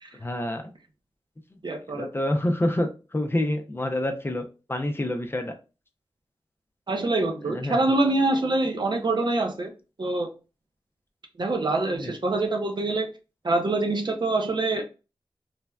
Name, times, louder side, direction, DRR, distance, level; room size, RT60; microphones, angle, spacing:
voice 1, 0.2-0.6 2.0-2.9 3.1-4.4 4.7-5.5 7.5-7.8 12.0-12.1, left 1 dB, 25° left, 0.5 m, -27 dB
voice 2, 1.6-2.1 6.9-9.7 10.0-10.3 11.4-13.1 13.4-14.8, right 2 dB, 55° right, 0.6 m, -25 dB
3.2 x 2.1 x 2.3 m
wide cardioid pair, 60°, 10 cm